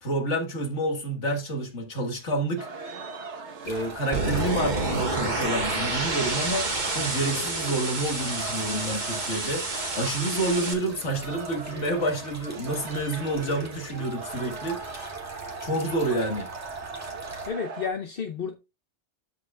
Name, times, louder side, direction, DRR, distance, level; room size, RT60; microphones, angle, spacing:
voice 1, 0.0-2.7 3.7-9.7 10.0-15.2 15.6-16.5, right 1 dB, 85° left, 2.0 m, -29 dB
sound 1, 2.6-17.9, right 3 dB, 80° right, 1.5 m, -39 dB
sound 2, 3.6-17.5, right 2 dB, 15° right, 2.0 m, -45 dB
sound 3, 4.1-10.7, right 2 dB, 40° right, 1.7 m, -29 dB
voice 2, 17.4-18.5, left 6 dB, 55° left, 0.9 m, -31 dB
13.0 x 5.0 x 2.3 m
omnidirectional pair, 1.2 m